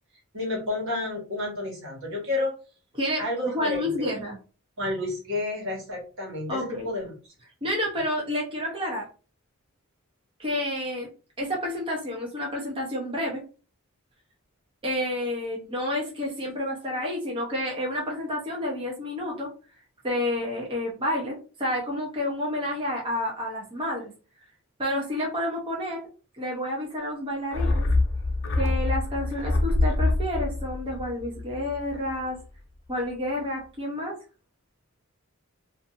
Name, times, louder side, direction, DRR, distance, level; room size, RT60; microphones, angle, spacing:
voice 1, 0.3-2.5 3.2-3.9 4.8-7.1, left 2 dB, 70° right, -2 dB, 1.5 m, -30 dB
voice 2, 2.9-4.4 6.5-6.9 7.6-9.1 10.4-11.1 11.4-13.4 14.8-19.5 20.0-24.1 24.8-26.1 26.4-27.9 28.6-32.4 32.9-34.2, left 1 dB, 25° right, -2 dB, 0.7 m, -30 dB
sound 1, 27.5-32.1 32.4-32.5, left 2 dB, 65° left, 0.6 m, -25 dB
2.5 x 2.5 x 2.6 m, 0.35 s
head